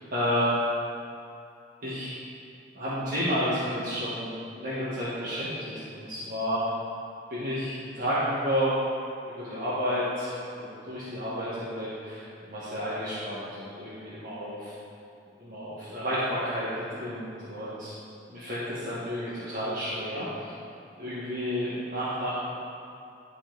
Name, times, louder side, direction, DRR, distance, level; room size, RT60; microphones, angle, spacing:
voice 1, 0.1-0.5 1.8-2.1 2.7-4.3 4.6-6.7 7.3-8.7 9.3-14.7 15.4-17.9 18.3-20.5 21.0-22.3, equal, 50° right, -11 dB, 1.4 m, -31 dB
11.5 x 4.2 x 3.9 m, 2.5 s
head